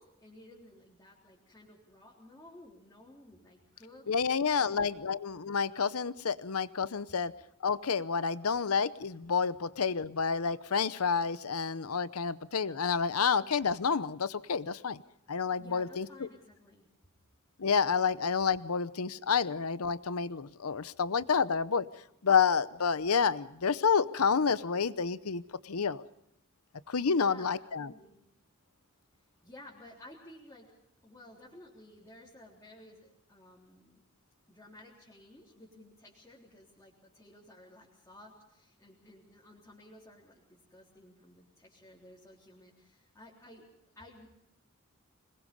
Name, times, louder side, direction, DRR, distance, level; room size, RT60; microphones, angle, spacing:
voice 1, 0.0-4.1 4.5-5.0 15.6-16.9 27.0-28.3 29.4-30.7 31.0-34.0 34.5-43.6 43.9-44.3, left 1 dB, 15° left, -7 dB, 3.8 m, -55 dB
voice 2, 4.1-7.3 7.6-15.0 15.3-16.3 17.6-21.9 22.2-26.0 26.9-27.9, left 6 dB, 85° left, 15 dB, 0.8 m, -29 dB
26.0 x 21.0 x 5.4 m, 0.79 s
head